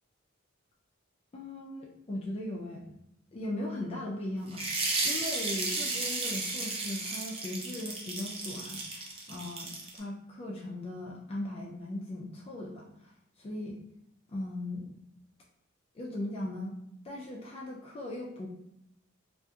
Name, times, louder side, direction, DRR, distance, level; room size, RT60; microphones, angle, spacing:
voice 1, 1.3-2.9 3.3-13.1 13.4-13.8 14.3-14.9 15.9-16.7 17.0-18.5, left 1 dB, 30° left, -3 dB, 0.3 m, -38 dB
sound 1, 4.5-10.0, right 3 dB, 30° right, 0.5 m, -34 dB
2.7 x 2.4 x 2.3 m, 0.80 s
head